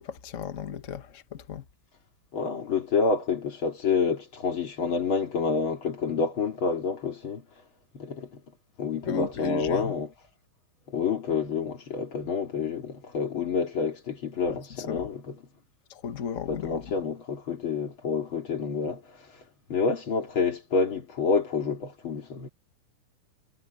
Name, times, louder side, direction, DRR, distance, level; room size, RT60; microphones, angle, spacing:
voice 1, 0.0-1.6 9.0-9.9 14.4-14.6 14.9-15.1 15.9-16.8, left 6 dB, 70° left, 0.7 m, -34 dB
voice 2, 2.3-7.5 7.9-8.4 8.8-10.1 10.9-15.4 16.5-19.4 19.7-22.5, left 5 dB, 40° left, 3.0 m, -28 dB
omnidirectional pair, 3.6 m